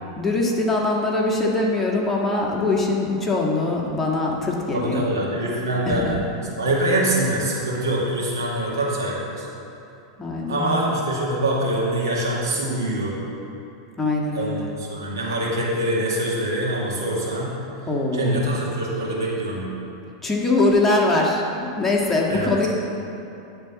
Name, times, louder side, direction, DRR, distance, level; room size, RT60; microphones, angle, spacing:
voice 1, 0.2-5.0 5.8-6.2 10.2-10.8 14.0-14.7 17.9-18.4 20.2-22.7, left 2 dB, 15° left, -3 dB, 1.6 m, -22 dB
voice 2, 4.7-6.2 6.6-9.5 10.5-13.2 14.3-17.5 18.1-19.6 22.3-22.7, right 1 dB, 85° right, -5 dB, 2.2 m, -24 dB
11.0 x 4.0 x 7.2 m, 2.8 s
hypercardioid pair, 105°, 2 cm